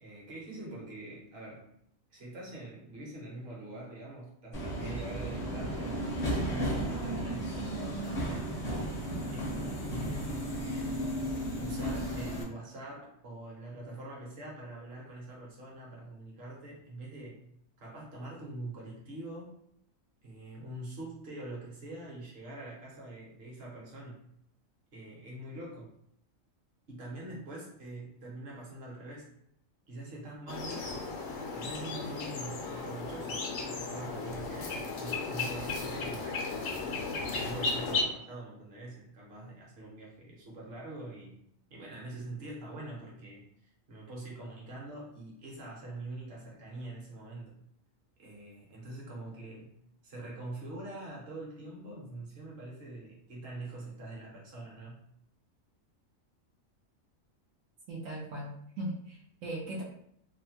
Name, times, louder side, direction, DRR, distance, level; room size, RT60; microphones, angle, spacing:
voice 1, 0.0-1.7 2.1-6.0 6.5-9.7 10.0-10.4 11.6-17.4 17.8-19.5 20.2-24.2 24.9-25.9 26.9-29.3 29.9-31.1 31.5-36.4 37.2-41.4 41.7-47.5 48.2-49.7 50.0-55.0, right 2 dB, 50° right, -4 dB, 1.1 m, -44 dB
Subway metro underground, 4.5-12.4, right 1 dB, 40° left, 0.6 m, -34 dB
sound 1, 30.5-38.0, left 3 dB, 65° left, 0.8 m, -35 dB
voice 2, 57.9-59.8, right 1 dB, 80° right, -3 dB, 1.0 m, -38 dB
2.7 x 2.1 x 2.8 m, 0.71 s
omnidirectional pair, 1.4 m